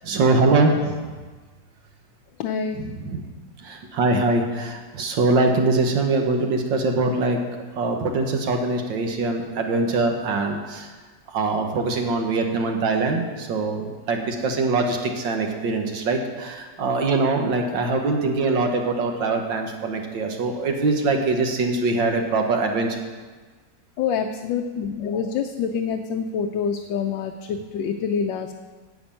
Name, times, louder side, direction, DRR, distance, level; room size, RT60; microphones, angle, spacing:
voice 1, 0.0-1.0 2.8-3.2 3.6-7.4 7.8-10.9 11.3-23.0, right 3 dB, 80° right, 3 dB, 1.9 m, -23 dB
voice 2, 2.4-2.8 24.0-28.5, left 6 dB, 80° left, 4 dB, 1.3 m, -26 dB
10.5 x 6.2 x 8.7 m, 1.4 s
omnidirectional pair, 2.0 m